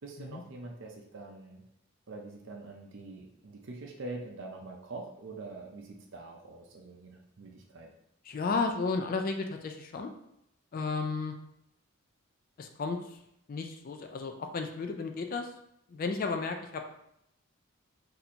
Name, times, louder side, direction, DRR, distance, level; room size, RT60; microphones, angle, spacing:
voice 1, 0.0-1.6 2.1-7.9, right 2 dB, 60° right, 0 dB, 0.5 m, -44 dB
voice 2, 8.3-10.1 10.7-11.4 12.6-13.0 13.5-15.5 15.9-16.9, left 4 dB, 45° left, 6 dB, 0.3 m, -33 dB
2.7 x 2.6 x 4.2 m, 0.78 s
head